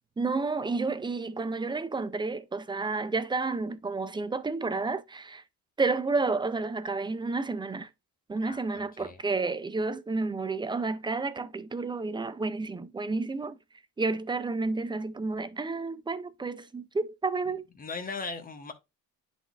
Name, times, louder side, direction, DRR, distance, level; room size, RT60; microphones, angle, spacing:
voice 1, 0.2-5.4 5.8-7.9 8.3-13.6 14.0-17.6, right 3 dB, 15° right, 0.4 m, -31 dB
voice 2, 8.4-9.2 17.8-18.7, left 4 dB, 25° left, 1.1 m, -38 dB
10.0 x 4.1 x 2.4 m
cardioid pair, 125°, 37 cm